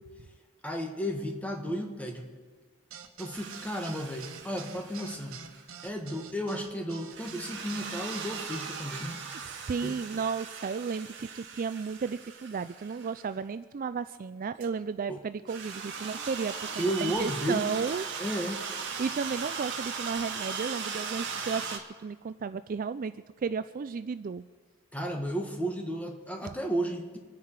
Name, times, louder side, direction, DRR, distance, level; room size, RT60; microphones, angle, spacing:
voice 1, 0.6-2.3 3.2-5.4 5.8-9.2 9.8-10.0 15.1-15.2 16.8-17.7 18.2-18.6 24.9-27.2, equal, 5° left, 2 dB, 1.8 m, -33 dB
sound 1, 2.9-8.8, right 6 dB, 75° right, 1.4 m, -46 dB
sound 2, 3.3-5.8 7.1-13.2 14.6-14.7 15.5-21.8, right 5 dB, 55° right, 1.9 m, -38 dB
voice 2, 9.4-18.0 19.0-24.4, right 5 dB, 40° right, 12 dB, 0.4 m, -34 dB
26.5 x 9.7 x 4.8 m, 1.5 s
head